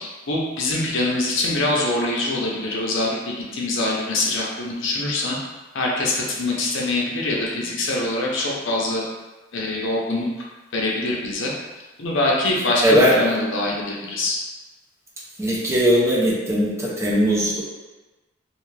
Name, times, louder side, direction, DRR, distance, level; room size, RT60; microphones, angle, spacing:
voice 1, 0.0-3.2 3.5-5.4 5.7-9.0 9.5-10.3 10.7-11.5 12.0-14.3, left 2 dB, 65° left, -3 dB, 0.6 m, -24 dB
voice 2, 12.8-13.2 15.4-17.6, equal, 15° right, -5 dB, 0.5 m, -19 dB
2.5 x 2.4 x 3.1 m, 1.2 s
head